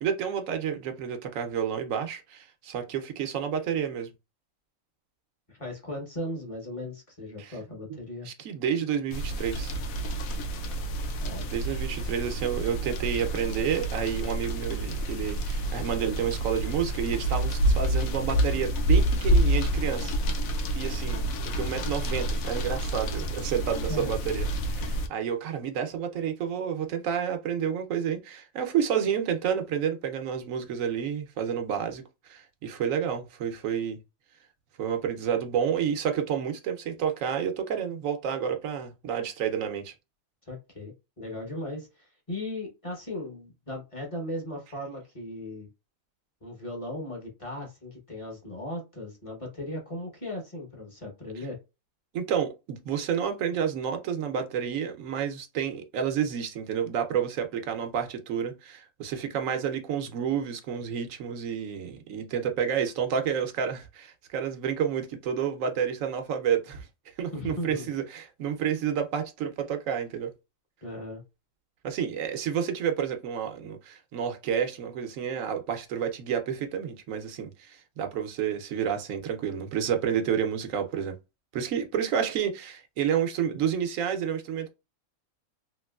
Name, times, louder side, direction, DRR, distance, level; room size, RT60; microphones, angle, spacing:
voice 1, 0.0-4.1 7.4-7.5 8.2-9.7 11.5-20.1 20.7-21.3 21.6-34.0 34.8-39.9 52.1-66.9 67.2-70.3 71.8-81.1 81.5-84.7, right 8 dB, 75° right, 1.0 m, -30 dB
voice 2, 5.5-8.3 11.2-11.8 23.9-24.1 40.4-45.7 46.4-51.6 67.3-67.9 70.8-71.2, left 1 dB, 30° left, 0.9 m, -37 dB
sound 1, 9.1-25.1, right 1 dB, 85° left, 1.0 m, -28 dB
3.0 x 2.9 x 2.2 m
omnidirectional pair, 1.4 m